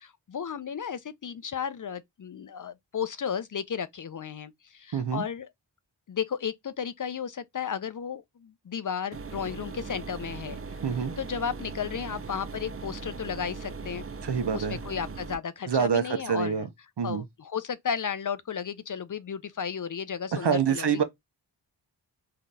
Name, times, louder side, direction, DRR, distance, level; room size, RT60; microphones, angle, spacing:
voice 1, 0.0-5.5 6.1-10.6 11.2-14.0 14.5-16.7 17.0-21.0, left 7 dB, 45° left, 0.5 m, -34 dB
voice 2, 4.9-5.3 10.8-11.1 14.2-14.8 15.7-16.7 17.0-17.2 20.4-21.0, right 7 dB, 60° right, 0.9 m, -26 dB
sound 1, 9.1-15.4, right 4 dB, 30° right, 0.5 m, -39 dB
3.7 x 2.8 x 2.3 m
cardioid pair, 50°, 45 cm